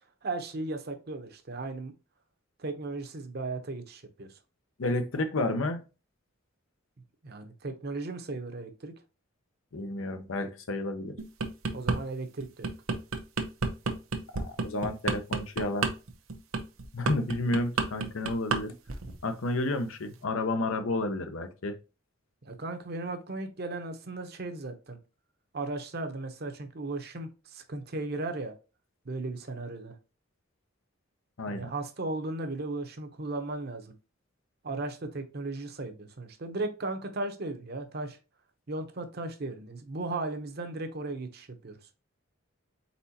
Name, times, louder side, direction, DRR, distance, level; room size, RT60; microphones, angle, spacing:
voice 1, 0.2-1.9 2.6-4.3 7.2-8.9 11.7-12.7 22.4-25.0 25.5-28.5 29.0-30.0 31.5-33.9 34.6-38.2 38.7-41.8, right 2 dB, 50° right, 0.8 m, -36 dB
voice 2, 4.8-5.8 9.7-11.1 14.4-15.9 16.9-18.7 19.2-21.8 31.4-31.7, left 2 dB, 80° left, 0.7 m, -31 dB
sound 1, 11.2-12.0 12.4-18.6 18.9-19.2, right 4 dB, 90° right, 0.8 m, -30 dB
4.2 x 4.2 x 2.8 m
head